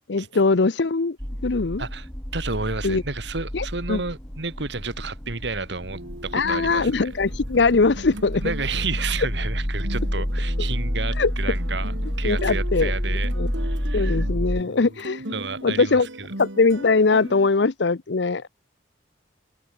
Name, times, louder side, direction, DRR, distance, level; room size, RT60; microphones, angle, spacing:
voice 1, 0.1-1.2 1.4-1.8 2.8-3.0 3.5-4.0 6.3-8.4 11.2-11.3 12.2-12.9 13.4-13.5 13.9-15.2 15.6-16.1 16.4-18.5, left 4 dB, 70° left, 0.7 m, -21 dB
sound 1, 1.2-14.6, equal, 15° left, 2.1 m, -29 dB
voice 2, 2.3-7.0 8.3-13.3 13.6-14.2 15.3-16.3, right 4 dB, 70° right, 1.9 m, -31 dB
sound 2, 5.9-17.5, right 1 dB, 90° right, 4.0 m, -39 dB
head